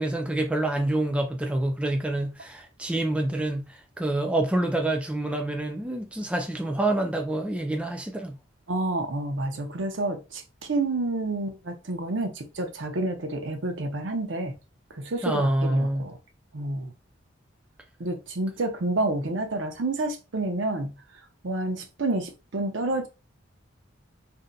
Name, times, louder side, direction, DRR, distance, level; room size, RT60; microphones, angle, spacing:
voice 1, 0.0-8.3 15.2-16.0, right 1 dB, 5° right, 0.3 m, -27 dB
voice 2, 8.7-14.5 14.9-16.2 16.5-16.9 18.0-20.9 21.4-23.1, right 2 dB, 65° right, 0.7 m, -29 dB
2.6 x 2.2 x 3.8 m
head